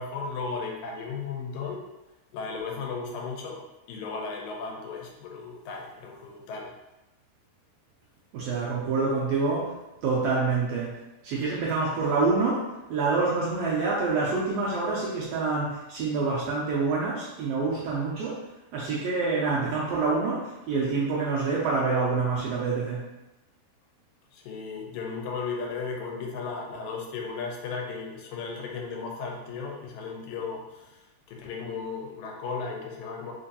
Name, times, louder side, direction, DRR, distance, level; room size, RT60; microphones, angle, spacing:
voice 1, 0.0-1.8 2.3-6.7 24.3-33.3, left 4 dB, 85° left, 0 dB, 2.0 m, -35 dB
voice 2, 8.3-9.7 10.0-11.0 11.2-18.4 18.7-23.1, right 4 dB, 80° right, -5 dB, 1.5 m, -27 dB
4.6 x 2.6 x 2.7 m, 0.99 s
omnidirectional pair, 3.3 m